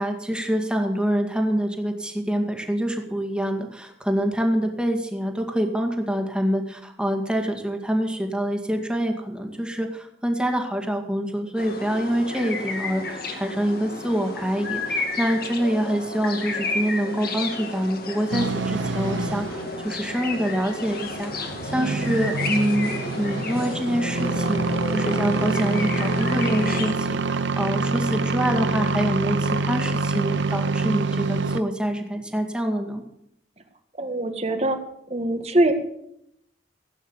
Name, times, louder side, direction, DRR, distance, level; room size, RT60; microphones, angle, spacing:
voice 1, 0.0-33.0, equal, 5° right, 4 dB, 2.1 m, -26 dB
sound 1, 11.6-26.9, left 3 dB, 55° left, 2.5 m, -32 dB
sound 2, 18.3-31.6, right 3 dB, 80° right, 0.8 m, -26 dB
voice 2, 21.8-22.1 34.0-34.8 35.1-35.7, right 1 dB, 35° right, 7 dB, 1.7 m, -23 dB
17.0 x 9.2 x 7.3 m, 0.76 s
head